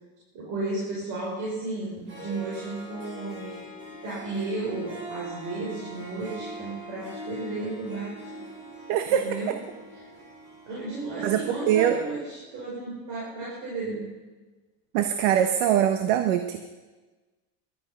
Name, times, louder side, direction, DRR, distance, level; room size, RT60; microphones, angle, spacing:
voice 1, 0.3-3.6 4.0-8.2 9.1-9.5 9.9-10.1 10.7-14.1, right 2 dB, 55° right, -5 dB, 5.3 m, -33 dB
Harp, 1.8-1.9 2.1-11.6, right 1 dB, 30° right, 5.2 m, -42 dB
voice 2, 8.9-9.5 11.2-12.0 14.9-16.6, right 10 dB, 80° right, 8 dB, 1.1 m, -23 dB
21.5 x 12.0 x 5.5 m, 1.2 s
cardioid pair, 155°, 37 cm